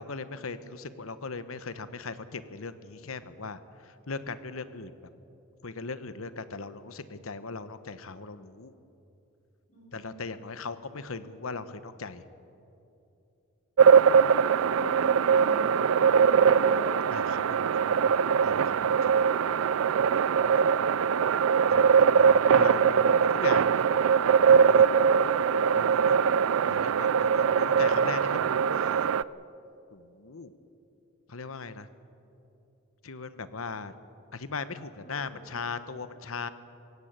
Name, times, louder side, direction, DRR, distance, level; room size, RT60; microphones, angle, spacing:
voice 1, 0.0-5.1 5.6-8.7 9.9-12.2 17.1-18.1 18.4-19.1 21.7-21.9 22.1-23.9 24.4-24.8 25.7-26.2 26.7-28.9 29.9-30.5 31.3-31.9 33.0-33.9 34.3-36.5, left 4 dB, 90° left, 12 dB, 1.1 m, -39 dB
voice 2, 9.7-10.2 14.5-17.3 35.0-35.4, equal, 40° left, -5 dB, 6.3 m, -46 dB
sound 1, 13.8-29.2, right 7 dB, 85° right, 0.4 m, -22 dB
22.0 x 17.0 x 9.1 m, 2.8 s
head